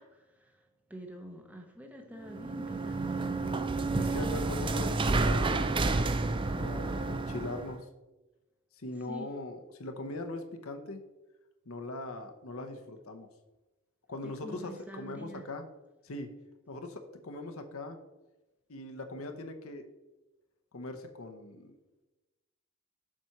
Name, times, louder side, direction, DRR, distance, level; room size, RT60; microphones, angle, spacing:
voice 1, 0.0-3.3 9.1-9.3 14.2-15.4, equal, 5° right, 3 dB, 0.9 m, -47 dB
sound 1, 2.2-7.8, right 3 dB, 20° right, 0.4 m, -30 dB
voice 2, 4.0-5.7 6.5-7.8 8.8-11.0 11.7-13.3 14.1-15.6 16.0-16.3 16.7-18.0 18.7-19.9 20.7-21.7, left 2 dB, 65° left, 6 dB, 0.9 m, -40 dB
7.4 x 4.4 x 5.8 m, 1.1 s
head